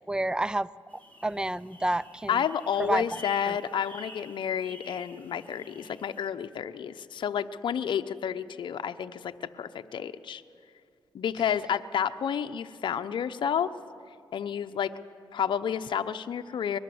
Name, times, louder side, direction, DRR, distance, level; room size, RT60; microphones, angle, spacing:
voice 1, 0.1-0.7 1.2-2.4 2.8-3.2 3.5-3.6, right 1 dB, 10° right, 20 dB, 0.5 m, -29 dB
sound 1, 0.9-6.3, equal, 20° left, 3.6 m, -50 dB
voice 2, 2.3-10.4 11.1-13.7 14.3-14.9 15.3-16.8, left 8 dB, 65° left, 8 dB, 0.8 m, -30 dB
23.0 x 21.5 x 7.9 m, 2.3 s
cardioid pair, 80°, 9 cm